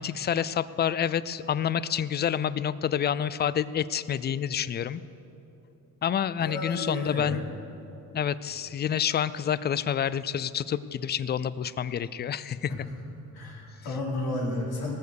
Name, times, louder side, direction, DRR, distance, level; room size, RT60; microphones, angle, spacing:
voice 1, 0.0-5.0 6.0-7.4 8.1-12.7, left 9 dB, 30° left, 17 dB, 0.4 m, -28 dB
voice 2, 6.4-7.4 12.7-12.8 13.3-15.0, left 2 dB, 70° left, -2 dB, 3.4 m, -32 dB
18.5 x 7.2 x 6.5 m, 2.9 s
cardioid pair, 95°, 38 cm